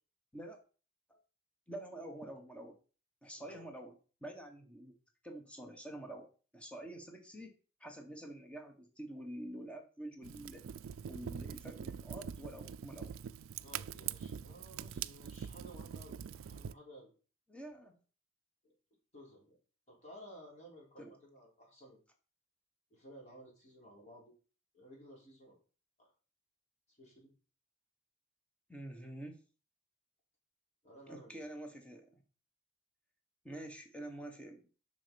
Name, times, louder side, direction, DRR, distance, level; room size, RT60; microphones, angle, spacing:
voice 1, 1.7-2.8 3.2-3.9 4.2-4.9 5.2-6.3 6.5-7.5 7.8-10.6 11.1-13.1 17.5-18.0 21.0-21.1 28.7-29.4 31.1-32.2 33.4-34.6, right 1 dB, 5° left, 3 dB, 1.4 m, -47 dB
voice 2, 3.4-3.7 13.6-17.1 18.6-18.7 19.1-19.6 19.9-22.0 22.9-24.3 24.7-25.6 26.0-26.1 27.0-27.3 30.8-31.4, equal, 35° left, -2 dB, 3.9 m, -55 dB
Fire, 10.2-16.7, right 8 dB, 75° right, 0.4 m, -44 dB
7.4 x 5.9 x 5.2 m, 0.37 s
head